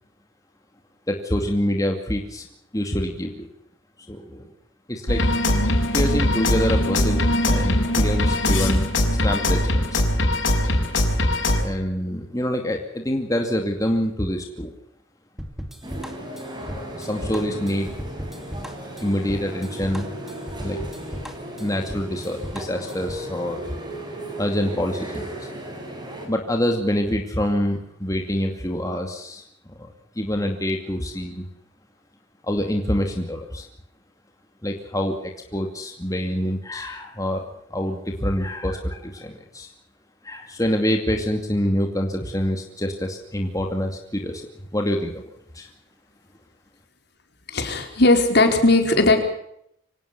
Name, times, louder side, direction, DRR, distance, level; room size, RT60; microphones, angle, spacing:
voice 1, 1.1-2.5 2.7-3.5 4.1-4.5 4.9-5.2 5.9-10.0 11.6-14.7 16.6-17.9 19.0-20.1 20.6-20.8 21.6-23.6 24.4-25.5 26.2-29.4 29.8-31.5 32.4-33.7 34.6-37.4 37.7-39.7 40.2-45.2 45.5-45.7, equal, 15° left, 3 dB, 2.4 m, -26 dB
sound 1, 5.1-11.6, left 1 dB, 80° left, 6.0 m, -21 dB
sound 2, 15.4-23.3, equal, ahead, 2.5 m, -36 dB
sound 3, 15.8-26.3, right 1 dB, 25° right, 6.6 m, -36 dB
voice 2, 47.5-49.2, left 2 dB, 55° left, 5 dB, 4.7 m, -17 dB
25.0 x 18.5 x 7.0 m, 0.74 s
head